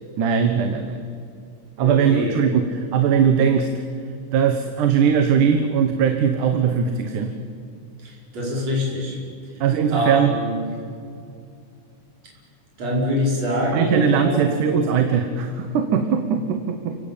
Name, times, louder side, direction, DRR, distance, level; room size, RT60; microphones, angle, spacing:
voice 1, 0.2-1.1 1.8-3.7 4.3-7.3 9.6-10.3 13.7-16.9, right 7 dB, 75° right, 6 dB, 2.8 m, -20 dB
voice 2, 1.8-2.5 8.0-9.2 9.5-10.8 12.8-14.6, equal, 50° right, -3 dB, 6.7 m, -25 dB
29.5 x 18.5 x 8.8 m, 2.4 s
omnidirectional pair, 3.7 m